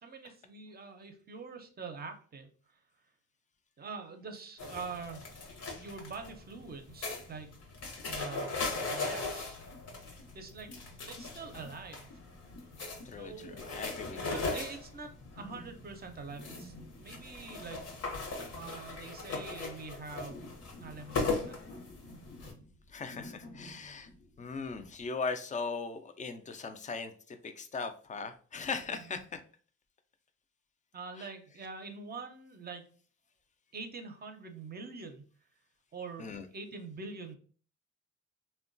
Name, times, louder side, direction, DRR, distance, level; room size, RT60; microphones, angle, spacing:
voice 1, 0.0-2.8 3.8-5.3 5.7-7.6 8.0-9.6 10.3-10.7 11.1-12.1 13.2-13.9 14.2-16.7 17.0-17.8 18.5-20.5 20.8-21.6 28.9-29.2 30.9-32.8 33.7-35.2 35.9-37.3, right 4 dB, 30° right, 6 dB, 0.5 m, -45 dB
sound 1, 4.6-22.5, left 3 dB, 60° left, 0.8 m, -39 dB
sound 2, 9.5-25.1, left 1 dB, 90° left, 0.8 m, -53 dB
voice 2, 13.1-14.6 22.9-24.1 24.4-29.4 31.2-31.3 36.2-36.4, left 4 dB, 25° left, 8 dB, 0.3 m, -39 dB
2.9 x 2.2 x 2.5 m, 0.42 s
cardioid pair, 105°, 30 cm